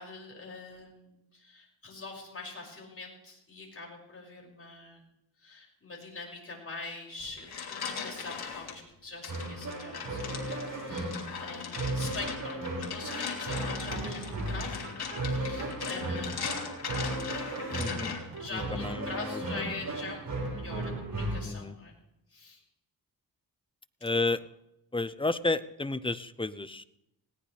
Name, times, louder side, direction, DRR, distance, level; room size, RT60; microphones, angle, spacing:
voice 1, 0.0-5.0 5.4-10.4 10.7-16.7 18.4-21.9 22.3-22.6, left 3 dB, 35° left, -2 dB, 6.4 m, -43 dB
sound 1, 7.2-8.7 9.2-18.4, left 6 dB, 75° left, 3.4 m, -39 dB
sound 2, 9.3-21.4, right 1 dB, 55° right, 5.9 m, -36 dB
sound 3, 13.1-21.1, right 6 dB, 75° right, 2.1 m, -48 dB
voice 2, 17.7-18.2 18.5-19.7 21.4-21.7 24.0-24.4 24.9-26.8, left 2 dB, 15° left, 14 dB, 0.7 m, -32 dB
20.0 x 17.5 x 3.4 m, 0.85 s
cardioid pair, 100°, 38 cm